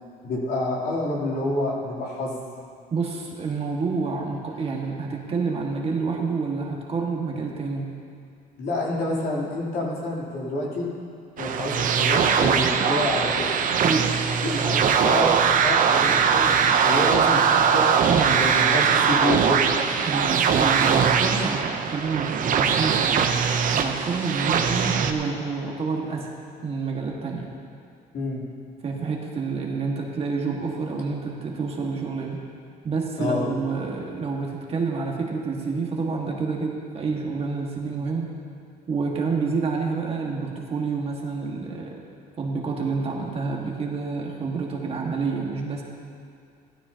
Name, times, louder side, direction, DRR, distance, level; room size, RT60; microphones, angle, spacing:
voice 1, 0.2-2.4 8.6-10.9 11.4-13.5 14.4-16.5 16.8-17.8 18.3-19.7 28.1-28.4 33.2-33.4, left 2 dB, 60° left, -5 dB, 3.3 m, -28 dB
voice 2, 2.9-7.9 13.8-14.1 14.5-14.8 18.1-18.4 20.0-23.3 23.7-27.5 28.8-32.4 32.8-38.3 38.9-42.0 42.4-45.8, right 4 dB, 35° right, -1 dB, 1.7 m, -28 dB
sound 1, 11.4-25.1, right 7 dB, 50° right, 0.7 m, -21 dB
15.0 x 12.5 x 2.9 m, 2.3 s
cardioid pair, 110°, 17 cm